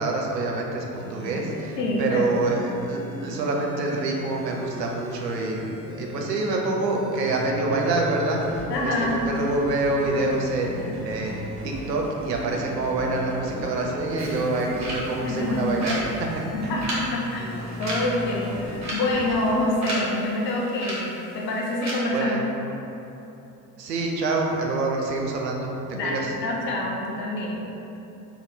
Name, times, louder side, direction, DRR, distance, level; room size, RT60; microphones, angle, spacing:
voice 1, 0.0-16.7 22.1-22.4 23.8-25.7 26.0-26.3, right 2 dB, 80° right, 0 dB, 0.7 m, -26 dB
sound 1, 0.9-19.5, equal, 10° right, 1.5 m, -38 dB
voice 2, 1.8-2.4 8.7-9.2 14.6-14.7 15.2-15.7 16.5-22.4 25.9-27.6, left 1 dB, 75° left, -2 dB, 0.8 m, -26 dB
sound 2, 14.2-21.9, right 1 dB, 35° right, 1.2 m, -35 dB
3.3 x 2.6 x 4.1 m, 2.9 s
figure-of-eight pair, 60°, 49 cm